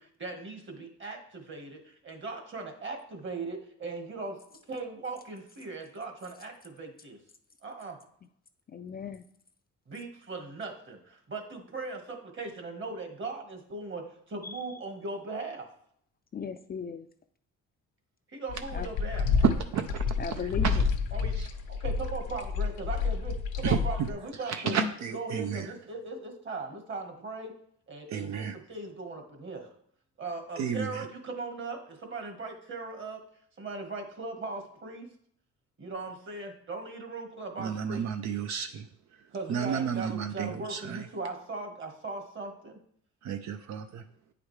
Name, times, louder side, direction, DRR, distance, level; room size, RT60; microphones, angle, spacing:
voice 1, 0.0-4.4 4.7-7.2 7.6-8.0 9.9-15.7 18.3-19.3 21.1-24.8 25.1-27.5 27.9-29.7 30.2-33.2 33.6-35.1 35.8-38.1 39.3-42.8, right 3 dB, 40° right, 4 dB, 1.5 m, -39 dB
voice 2, 8.7-9.2 14.4-14.5 16.3-17.0 18.7-18.9 20.2-20.8 24.6-24.9, left 6 dB, 30° left, 8 dB, 0.4 m, -36 dB
sound 1, 18.5-24.1, left 5 dB, 85° left, 0.9 m, -29 dB
voice 3, 24.5-25.6 28.1-28.6 30.6-30.9 37.6-38.8 39.5-41.0 43.2-44.0, right 7 dB, 65° right, 7 dB, 0.5 m, -31 dB
8.7 x 4.9 x 3.2 m, 0.64 s
cardioid pair, 90°, 30 cm